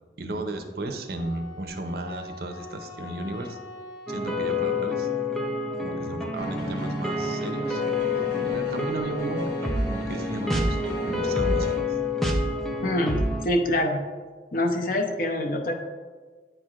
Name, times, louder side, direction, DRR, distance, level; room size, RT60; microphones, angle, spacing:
voice 1, 0.2-3.6 4.1-5.1 5.8-7.8 8.4-10.8 11.0-12.0, right 2 dB, 60° right, 6 dB, 0.6 m, -34 dB
Wind instrument woodwind instrument, 1.2-5.4, left 3 dB, 90° left, 1.7 m, -43 dB
sound 1, 4.1-13.4, left 2 dB, ahead, 0.4 m, -28 dB
sound 2, 6.3-11.8, left 1 dB, 20° left, 1.0 m, -36 dB
voice 2, 12.8-13.2 13.4-14.0 14.5-15.7, left 1 dB, 50° left, 3 dB, 0.6 m, -25 dB
8.9 x 4.5 x 2.4 m, 1.4 s
head